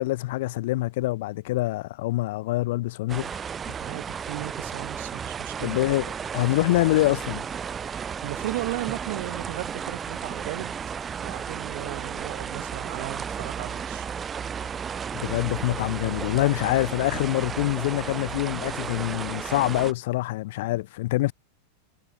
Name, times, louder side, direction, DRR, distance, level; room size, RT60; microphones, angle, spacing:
voice 1, 0.0-3.3 5.6-6.1 6.3-7.4 15.1-21.3, left 18 dB, 50° left, 1.3 m, -25 dB
sound 1, 3.1-19.9, right 7 dB, 20° right, 2.9 m, -34 dB
voice 2, 3.8-5.8 7.8-10.7 11.2-14.1, right 19 dB, 50° right, 1.8 m, -36 dB
figure-of-eight pair, 90°, 0 cm